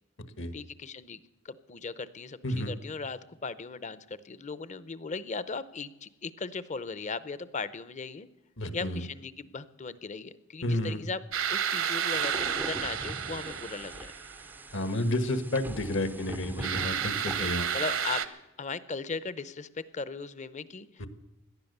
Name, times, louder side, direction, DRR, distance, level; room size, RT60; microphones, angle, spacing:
voice 1, 0.5-1.2 1.4-8.3 8.7-11.2 11.5-14.1 17.4-18.2 18.6-21.1, left 4 dB, 35° left, 16 dB, 0.7 m, -38 dB
voice 2, 8.6-9.1 10.6-11.0 14.7-17.7 21.0-21.1, left 1 dB, 65° left, 11 dB, 1.4 m, -31 dB
sound 1, 11.3-14.6 16.6-18.3, right 8 dB, 75° right, 1.1 m, -31 dB
sound 2, 12.1-18.0, right 1 dB, 10° right, 0.5 m, -43 dB
17.5 x 11.5 x 6.7 m, 1.0 s
head